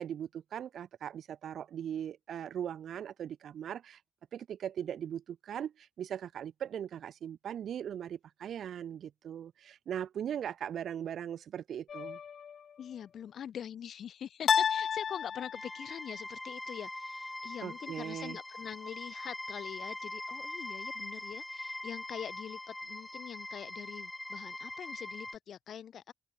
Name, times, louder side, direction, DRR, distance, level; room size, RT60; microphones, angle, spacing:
voice 1, 0.0-4.0 4.3-12.2 17.6-18.4, right 9 dB, 75° right, 1.4 m, -39 dB
sound 1, 11.9-12.6 14.5-15.9, left 7 dB, 55° left, 1.9 m, -31 dB
voice 2, 12.8-26.1, left 9 dB, 70° left, 2.0 m, -44 dB
sound 2, 15.5-25.4, left 1 dB, 10° left, 4.7 m, -42 dB
open air
wide cardioid pair, 160°, 0 cm